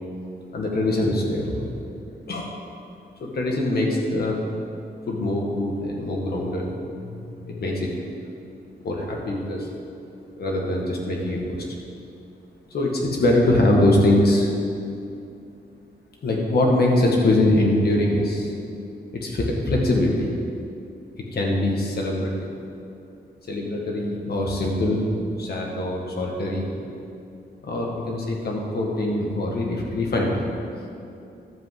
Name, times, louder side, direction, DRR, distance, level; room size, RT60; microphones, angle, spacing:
voice 1, 0.5-1.7 2.3-2.5 3.2-4.4 5.1-6.7 7.0-7.9 8.8-9.7 10.4-11.7 12.7-14.5 16.2-18.5 19.1-20.3 21.3-22.3 23.5-25.0 25.4-26.6 27.6-30.4, left 1 dB, 65° left, -1 dB, 1.8 m, -23 dB
11.5 x 5.3 x 7.7 m, 2.6 s
wide cardioid pair, 155°, 17 cm